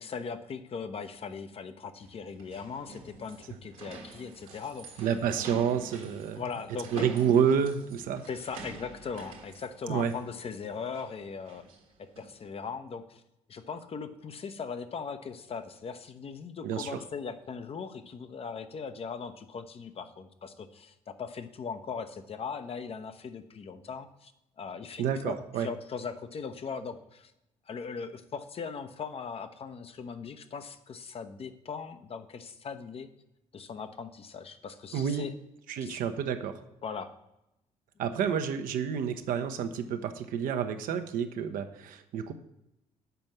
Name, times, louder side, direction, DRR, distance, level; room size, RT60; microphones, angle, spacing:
voice 1, 0.0-5.1 6.4-7.1 8.3-11.6 12.2-13.2 13.5-24.3 24.6-27.3 27.7-33.1 33.5-35.3 35.8-36.0 36.8-37.1, left 5 dB, 35° left, 9 dB, 0.7 m, -39 dB
sound 1, 2.0-12.4, right 3 dB, 70° right, 1.3 m, -48 dB
voice 2, 5.0-6.4 6.9-8.3 9.9-10.1 16.6-17.0 25.0-25.7 34.9-35.3 35.7-36.6 38.0-42.3, right 7 dB, 50° right, 8 dB, 0.8 m, -29 dB
6.8 x 5.3 x 7.1 m, 0.88 s
figure-of-eight pair, 50°, 18 cm